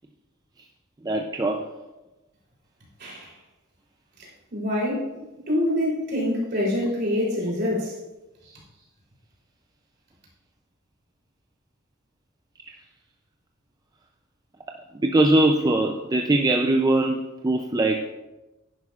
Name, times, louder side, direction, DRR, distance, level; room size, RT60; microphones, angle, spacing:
voice 1, 1.0-1.7 15.0-18.1, right 2 dB, 20° right, 3 dB, 0.4 m, -21 dB
voice 2, 3.0-3.3 4.5-5.1 5.5-7.9, left 1 dB, 55° right, -4 dB, 3.4 m, -25 dB
10.5 x 10.0 x 2.4 m, 1.0 s
head